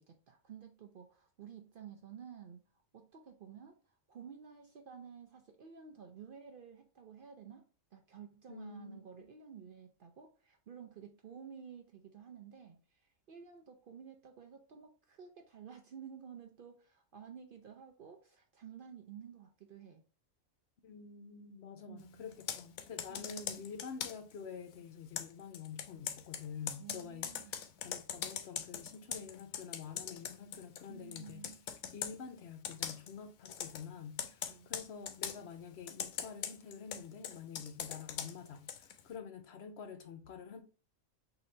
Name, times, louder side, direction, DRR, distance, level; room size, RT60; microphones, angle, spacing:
voice 1, 0.0-2.6 2.9-20.0 21.9-22.4 23.1-23.7 26.8-27.6 30.9-31.6 34.2-34.7, right 7 dB, 65° right, 0.5 m, -52 dB
voice 2, 8.5-9.0 20.8-31.4 31.9-40.6, left 6 dB, 60° left, 0.8 m, -48 dB
Computer keyboard, 22.3-24.3 25.2-30.9 31.1-32.2 32.6-33.1 33.5-33.8 34.2-35.4 35.9-39.0, left 9 dB, 85° left, 1.0 m, -41 dB
3.8 x 2.7 x 4.2 m
omnidirectional pair, 1.4 m